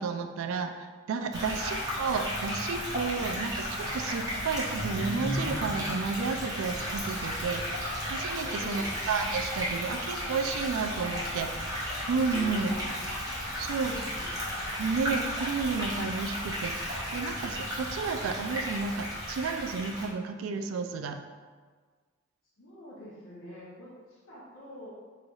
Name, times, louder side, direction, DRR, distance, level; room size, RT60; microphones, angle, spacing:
voice 1, 0.0-7.6 8.1-12.8 13.6-13.9 14.8-21.2, right 4 dB, 80° right, 6 dB, 0.3 m, -32 dB
sound 1, 1.3-20.1, equal, 20° right, 0.7 m, -34 dB
sound 2, 5.4-11.2, right 1 dB, 45° right, 1.0 m, -49 dB
voice 2, 8.3-9.0 12.3-12.9 13.4-14.3 22.6-24.9, equal, 70° left, -8 dB, 0.8 m, -47 dB
3.9 x 3.2 x 2.3 m, 1.5 s
head